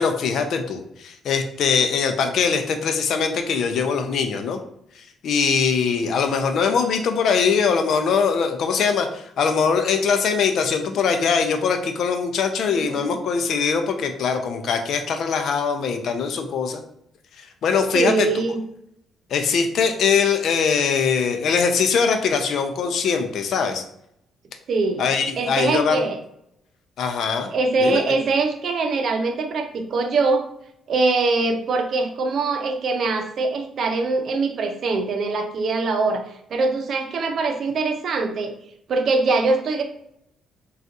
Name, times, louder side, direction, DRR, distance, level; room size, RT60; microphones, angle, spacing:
voice 1, 0.0-4.6 4.9-16.8 17.4-18.3 19.3-23.8 25.0-26.0 27.0-27.5 27.8-28.0, left 6 dB, 70° left, 6 dB, 0.5 m, -22 dB
voice 2, 12.7-13.1 17.9-18.6 24.7-25.1 25.4-26.2 27.5-30.5 30.9-36.2 36.5-38.5 38.9-39.8, right 3 dB, 60° right, 5 dB, 0.6 m, -22 dB
3.9 x 2.4 x 2.5 m, 0.74 s
cardioid pair, 90°, 0 cm